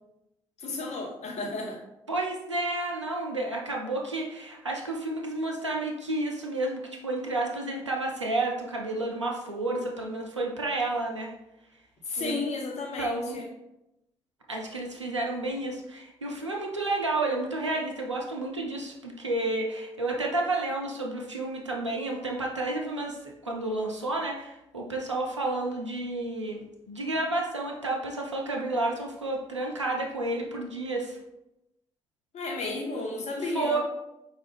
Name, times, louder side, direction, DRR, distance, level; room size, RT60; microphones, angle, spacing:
voice 1, 0.6-1.8 12.0-13.5 32.3-33.8, left 3 dB, 50° left, 0 dB, 1.0 m, -33 dB
voice 2, 2.1-11.3 12.2-12.4 13.0-13.4 14.5-23.2 23.4-31.2 33.4-33.8, right 2 dB, 90° right, 0 dB, 0.4 m, -31 dB
4.8 x 2.3 x 3.3 m, 0.89 s
figure-of-eight pair, 40°, 15 cm